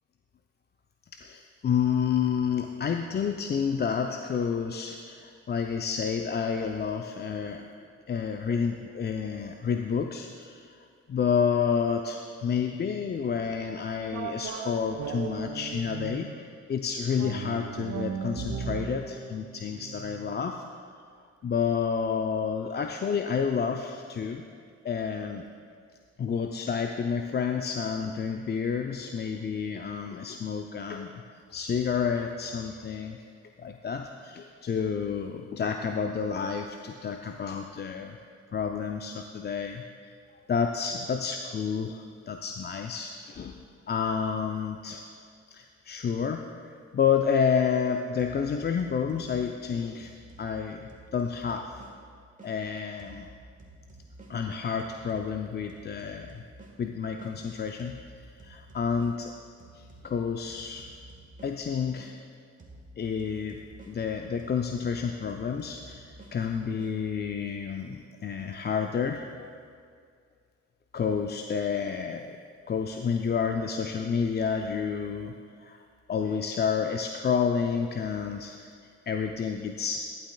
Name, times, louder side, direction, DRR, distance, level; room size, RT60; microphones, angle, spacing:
voice 1, 1.1-7.7 8.1-20.6 21.4-24.4 24.8-25.4 26.2-31.2 31.5-33.2 33.6-38.2 38.5-40.1 40.5-45.1 45.5-50.1 50.4-51.8 52.4-53.3 54.3-56.4 56.8-59.3 59.7-60.9 61.4-62.2 63.0-63.6 63.9-69.3 70.9-72.4 72.7-75.3 75.6-75.8 76.1-78.7 79.1-80.1, left 6 dB, 30° left, 4 dB, 0.5 m, -30 dB
sound 1, 14.1-16.4 17.2-20.5, right 6 dB, 50° right, 0.9 m, -37 dB
sound 2, 48.2-52.6 53.0-57.4 57.8-62.2 62.6-67.0, right 2 dB, 25° right, 1.6 m, -51 dB
11.5 x 11.0 x 2.3 m, 2.2 s
hypercardioid pair, 50°, 33 cm